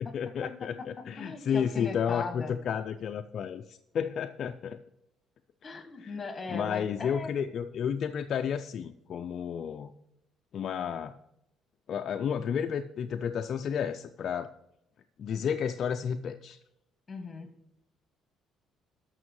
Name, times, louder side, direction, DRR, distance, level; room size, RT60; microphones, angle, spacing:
voice 1, 0.1-4.8 6.0-6.2 6.5-9.9 10.5-11.1 11.9-14.5 15.2-16.6, left 7 dB, 50° left, 7 dB, 0.4 m, -32 dB
voice 2, 1.2-2.6 5.6-7.3 17.1-17.5, left 4 dB, 20° left, 7 dB, 1.7 m, -38 dB
12.5 x 6.1 x 4.6 m, 0.82 s
cardioid pair, 140°, 0 cm